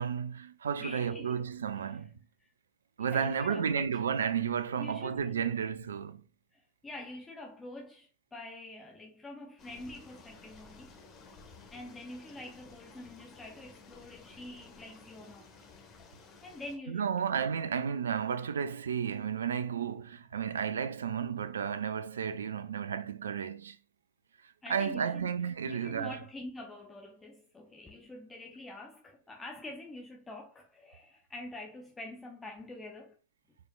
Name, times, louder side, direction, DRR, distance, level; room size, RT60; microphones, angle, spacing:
voice 1, 0.0-2.1 3.0-6.2 16.9-23.8 24.7-26.2, right 7 dB, 65° right, 0.4 m, -32 dB
voice 2, 0.8-1.4 1.7-2.1 2.4-2.5 3.0-4.0 4.8-5.3 6.5-10.9 11.7-15.5 16.4-17.1 24.6-25.3 25.7-33.2, left 2 dB, 15° left, 0.7 m, -46 dB
sound 1, 9.6-16.8, left 4 dB, 30° left, 1.3 m, -54 dB
4.9 x 4.4 x 2.3 m
figure-of-eight pair, 90°, 0 cm